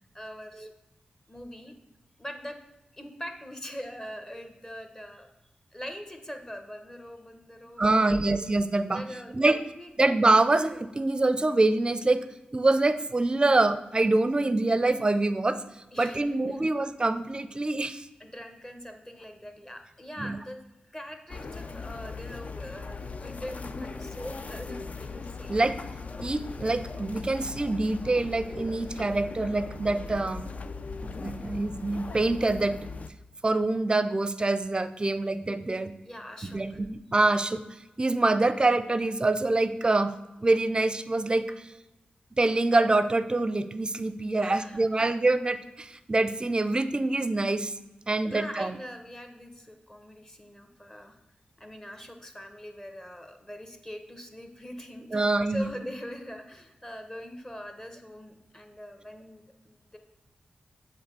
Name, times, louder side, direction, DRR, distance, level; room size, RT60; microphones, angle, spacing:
voice 1, 0.1-0.7 1.3-1.8 2.2-2.6 2.9-5.3 5.7-8.3 8.9-9.9 15.9-16.6 18.2-20.6 20.8-25.6 36.1-36.8 44.3-45.0 48.2-51.2 51.6-60.0, equal, 20° left, 6 dB, 1.1 m, -42 dB
voice 2, 7.8-9.0 9.3-9.6 10.0-12.2 12.5-15.6 16.0-18.0 20.2-20.4 25.5-25.8 26.2-30.4 31.0-32.8 33.4-35.9 36.5-37.6 38.0-40.1 40.4-41.5 42.4-47.7 48.1-48.7 55.1-55.7, right 2 dB, 30° right, 12 dB, 0.5 m, -25 dB
sound 1, 21.3-33.1, left 4 dB, 50° left, 0.5 m, -39 dB
7.9 x 3.9 x 6.8 m, 0.99 s
cardioid pair, 70°, 3 cm